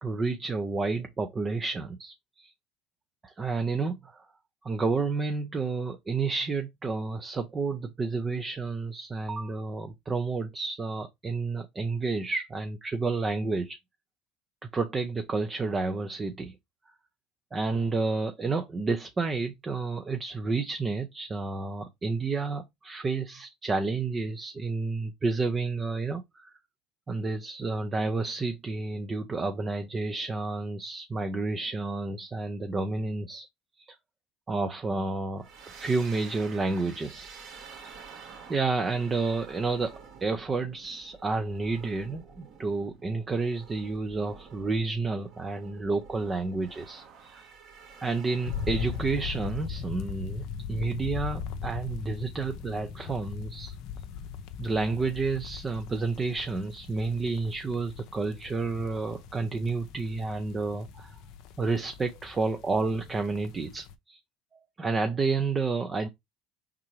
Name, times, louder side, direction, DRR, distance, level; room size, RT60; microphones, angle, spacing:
voice 1, 0.0-2.5 3.2-4.3 4.6-13.8 14.7-16.6 17.5-26.6 27.1-33.5 33.8-34.0 34.5-37.3 38.5-47.5 48.0-50.4 50.7-53.7 54.6-61.2 61.6-64.2 64.5-66.1, right 3 dB, 25° right, 0.6 m, -30 dB
sound 1, 35.4-49.5, right 5 dB, 60° right, 1.5 m, -50 dB
sound 2, 48.5-63.9, left 7 dB, 65° left, 0.6 m, -39 dB
4.3 x 3.7 x 3.1 m
supercardioid pair, 85°, 0 cm